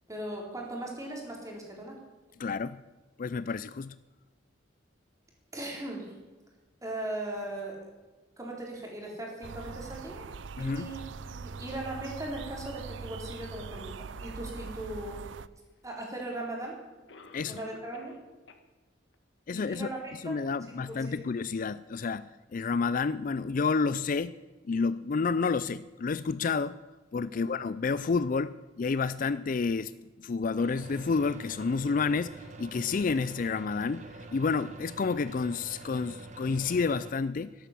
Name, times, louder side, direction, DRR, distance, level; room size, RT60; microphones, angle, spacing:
voice 1, 0.1-2.0 5.5-6.1 6.8-7.8 8.4-10.3 10.6-15.2 15.8-16.8 17.5-18.2 19.5-20.4 20.8-21.3 27.3-27.5, right 1 dB, 15° right, -1 dB, 4.1 m, -39 dB
voice 2, 2.4-2.8 3.2-3.9 10.6-10.9 17.3-17.6 19.5-19.9 20.2-24.3 24.6-26.8 27.1-29.9 30.2-32.3 32.6-34.0 34.3-37.5, left 4 dB, 45° left, 16 dB, 0.4 m, -29 dB
sound 1, 9.4-15.5, right 5 dB, 75° right, 0.5 m, -42 dB
Cough, 16.0-16.1 17.1-18.2 18.5-18.6 19.1-19.2 19.8-19.9, left 3 dB, 65° left, 1.6 m, -51 dB
sound 2, 30.6-37.1, right 2 dB, 40° right, 1.5 m, -46 dB
13.0 x 12.0 x 7.5 m, 1.3 s
head